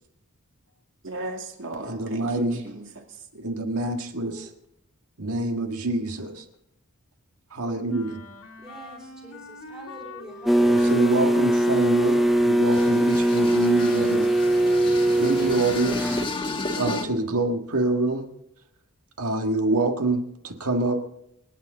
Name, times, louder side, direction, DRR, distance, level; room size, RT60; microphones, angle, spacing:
voice 1, 1.0-3.2, right 2 dB, 60° right, 2.3 m, -37 dB
voice 2, 1.8-2.6 3.3-4.5 5.2-6.4 7.5-8.2 10.6-14.3 15.2-16.2 16.7-18.3 19.2-21.0, right 2 dB, 80° right, 1.7 m, -26 dB
voice 3, 4.2-4.5 8.6-11.1, right 1 dB, 20° right, 2.6 m, -44 dB
Wind instrument woodwind instrument, 7.9-13.1, left 3 dB, 80° left, 2.1 m, -43 dB
sound 1, 10.4-16.3, right 1 dB, ahead, 0.7 m, -21 dB
sound 2, 12.6-17.1, left 3 dB, 20° left, 1.2 m, -33 dB
27.5 x 9.2 x 3.9 m
head